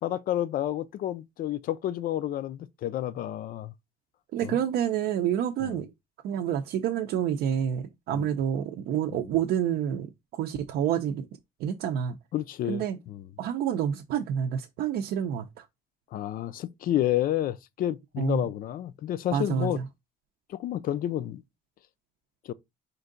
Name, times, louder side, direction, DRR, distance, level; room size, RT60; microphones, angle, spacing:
voice 1, 0.0-3.7 4.4-4.6 5.6-5.8 8.1-8.3 9.1-9.3 12.3-13.2 16.1-19.8 20.5-21.4 22.5-22.6, left 12 dB, 55° left, 0.4 m, -30 dB
voice 2, 4.3-5.9 6.2-11.3 11.6-12.2 12.7-13.0 13.4-15.6 18.2-18.4 19.3-19.9, right 9 dB, 75° right, 0.5 m, -28 dB
4.4 x 2.6 x 3.8 m
cardioid pair, 110°, 17 cm